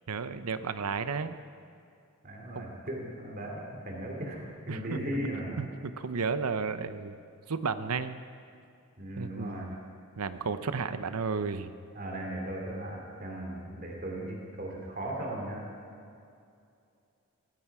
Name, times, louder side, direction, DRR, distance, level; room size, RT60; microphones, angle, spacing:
voice 1, 0.1-1.4 2.5-2.8 4.7-5.0 5.6-7.2 7.5-8.2 9.2-9.7 10.2-11.7, right 5 dB, 85° right, 11 dB, 0.7 m, -33 dB
voice 2, 2.2-4.4 4.7-5.6 9.0-9.7 11.9-15.7, right 1 dB, 40° right, -1 dB, 2.8 m, -37 dB
18.0 x 15.0 x 4.8 m, 2.5 s
head